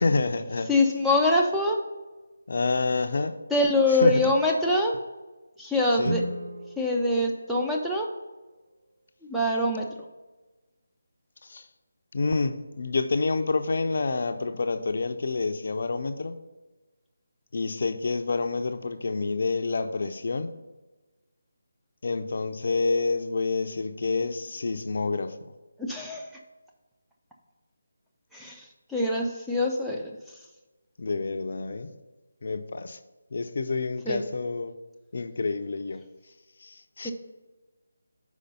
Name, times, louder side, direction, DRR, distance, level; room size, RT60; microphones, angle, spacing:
voice 1, 0.0-0.7 2.5-3.4 4.0-4.3 6.0-6.2 11.5-11.6 12.1-16.4 17.5-20.5 22.0-25.3 31.0-31.9 32.4-33.0 33.3-34.7 35.1-36.0 36.6-36.7 37.0-37.1, left 3 dB, 55° left, 9 dB, 0.5 m, -28 dB
voice 2, 0.7-1.8 3.5-5.0 5.6-6.2 6.8-8.1 9.3-9.9 25.8-26.2 28.3-30.1 34.1-34.2 37.0-37.1, left 1 dB, ahead, -3 dB, 0.5 m, -24 dB
Guitar, 6.0-8.6, right 2 dB, 50° right, 0.5 m, -37 dB
5.2 x 4.9 x 5.5 m, 1.2 s
figure-of-eight pair, 155°, 0 cm